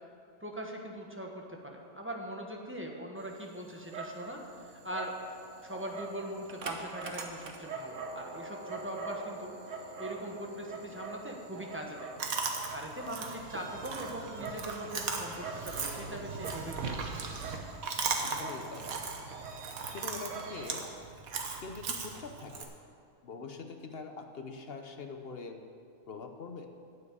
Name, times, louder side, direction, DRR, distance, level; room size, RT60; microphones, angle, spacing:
voice 1, 0.4-4.4 4.7-5.1 5.6-9.5 10.0-12.1 12.7-17.2, equal, 10° right, 0 dB, 1.1 m, -41 dB
Dog, 3.2-20.9, right 4 dB, 65° right, 1.3 m, -44 dB
Chewing mastication, 12.2-22.6, right 4 dB, 85° right, 1.5 m, -38 dB
voice 2, 18.2-18.8 19.9-20.9 21.6-22.7 23.2-25.6 26.1-26.7, left 4 dB, 50° left, 5 dB, 0.9 m, -43 dB
9.5 x 7.4 x 8.4 m, 2.4 s
omnidirectional pair, 1.4 m